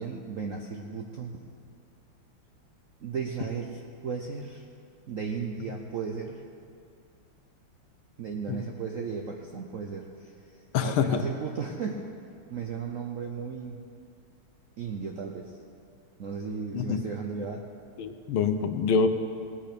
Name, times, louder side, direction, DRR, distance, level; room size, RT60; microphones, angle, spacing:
voice 1, 0.0-1.4 3.0-4.7 5.1-6.4 8.2-12.0 12.5-13.8 14.8-15.5 16.2-17.6, right 5 dB, 65° right, 1 dB, 0.8 m, -35 dB
voice 2, 10.7-11.1 16.7-17.0 18.0-19.1, left 6 dB, 80° left, 8 dB, 1.6 m, -25 dB
17.5 x 8.7 x 5.1 m, 2.3 s
omnidirectional pair, 2.3 m